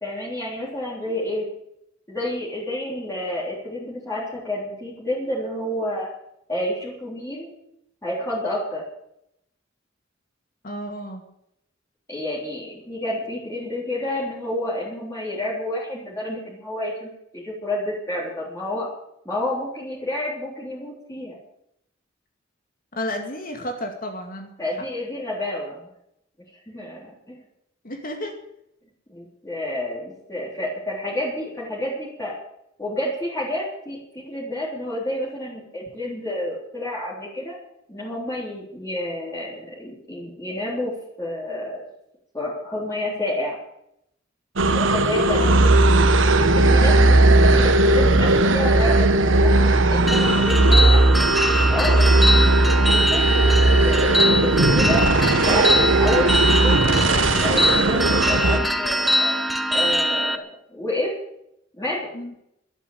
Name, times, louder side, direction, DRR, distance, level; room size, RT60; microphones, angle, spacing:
voice 1, 0.0-1.5 2.1-6.1 6.5-7.5 8.0-8.8 12.1-18.9 19.3-21.4 24.6-25.9 26.7-27.4 29.1-32.3 32.8-37.6 37.9-41.8 42.3-43.6 44.7-45.5 46.5-47.2 47.4-49.6 49.9-51.3 51.7-55.0 55.4-59.3 59.7-60.4 60.7-61.1 61.7-62.1, left 1 dB, 15° left, -7 dB, 3.6 m, -29 dB
voice 2, 10.6-11.2 22.9-24.9 27.8-28.4 45.3-45.7 46.7-46.9 50.6-51.0 62.1-62.3, equal, 45° left, 3 dB, 2.3 m, -32 dB
sound 1, 44.6-58.6, right 2 dB, 85° right, 1.3 m, -17 dB
sound 2, 50.1-60.4, equal, ahead, 1.1 m, -23 dB
12.0 x 10.5 x 8.6 m, 0.78 s
head